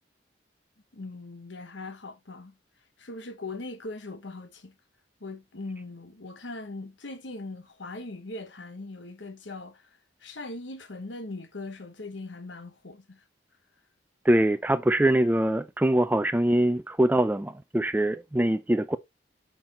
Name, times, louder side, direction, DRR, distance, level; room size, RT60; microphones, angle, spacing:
voice 1, 0.9-2.6 3.0-4.7 5.2-9.9 10.2-13.2, left 2 dB, 85° left, 1.2 m, -40 dB
voice 2, 14.2-19.0, right 1 dB, 10° right, 0.4 m, -23 dB
8.7 x 5.9 x 3.0 m
head